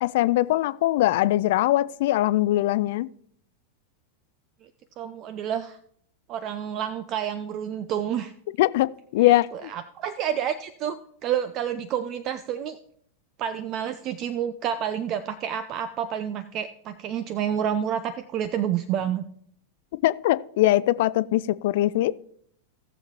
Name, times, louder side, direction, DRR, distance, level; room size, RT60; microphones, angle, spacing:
voice 1, 0.0-3.1 8.6-8.9 9.1-9.7 20.0-22.1, left 15 dB, 55° left, 18 dB, 0.4 m, -21 dB
voice 2, 5.0-5.8 6.3-8.3 9.2-11.0 11.2-12.8 13.4-19.2, right 9 dB, 35° right, 13 dB, 0.5 m, -29 dB
18.0 x 7.2 x 2.9 m, 0.66 s
figure-of-eight pair, 90°, 0 cm